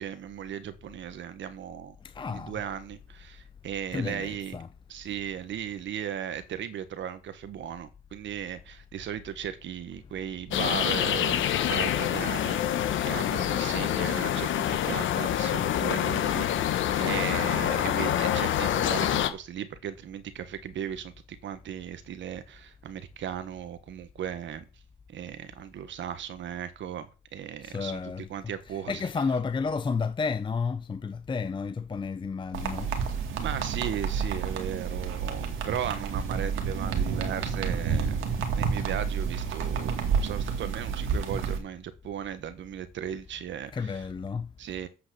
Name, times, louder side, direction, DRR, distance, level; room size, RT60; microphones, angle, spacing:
voice 1, 0.0-2.0 2.3-4.6 4.9-24.7 25.1-29.0 32.9-33.0 33.4-44.0 44.6-44.9, right 9 dB, 70° right, 1.3 m, -37 dB
voice 2, 2.0-2.5 3.9-4.7 27.6-28.3 28.7-32.9 43.7-44.5, left 5 dB, 25° left, 0.5 m, -31 dB
sound 1, 10.5-19.3, left 10 dB, 75° left, 1.1 m, -26 dB
sound 2, 32.5-41.6, right 6 dB, 85° right, 2.1 m, -30 dB
8.0 x 5.9 x 6.8 m
cardioid pair, 90°, 20 cm